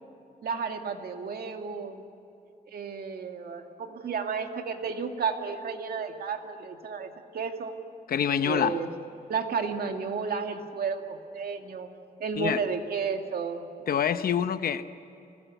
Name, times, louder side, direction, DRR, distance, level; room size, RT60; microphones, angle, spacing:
voice 1, 0.4-2.1 2.7-7.7 8.4-8.9 9.3-11.9 12.2-13.7, right 5 dB, 80° right, 4 dB, 2.2 m, -32 dB
voice 2, 8.1-8.8 12.4-12.6 13.9-14.9, left 8 dB, 75° left, 11 dB, 0.9 m, -26 dB
26.5 x 20.5 x 8.2 m, 2.9 s
wide cardioid pair, 140°, 15 cm